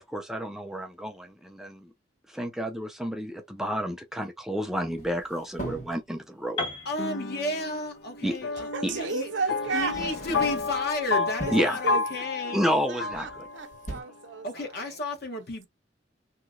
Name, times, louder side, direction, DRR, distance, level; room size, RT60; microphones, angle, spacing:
voice 1, 0.0-1.9 2.3-6.6 8.2-8.4 8.8-8.9 11.5-11.8 12.5-13.5, equal, ahead, 0.4 m, -30 dB
sound 1, 5.0-6.0 7.7-7.8 8.9-9.1 9.7-10.9 11.3-11.8 13.1-13.5 13.7-14.0, right 1 dB, 40° left, 1.4 m, -39 dB
Piano, 6.6-10.5, left 3 dB, 25° left, 1.1 m, -39 dB
voice 2, 6.8-9.3 9.7-12.6 14.4-15.7, left 1 dB, 55° left, 1.0 m, -33 dB
sound 2, 7.0-13.9, left 4 dB, 75° left, 0.6 m, -31 dB
voice 3, 8.6-10.2 11.2-12.0 12.9-14.5, right 4 dB, 70° right, 0.7 m, -33 dB
2.8 x 2.1 x 3.7 m
head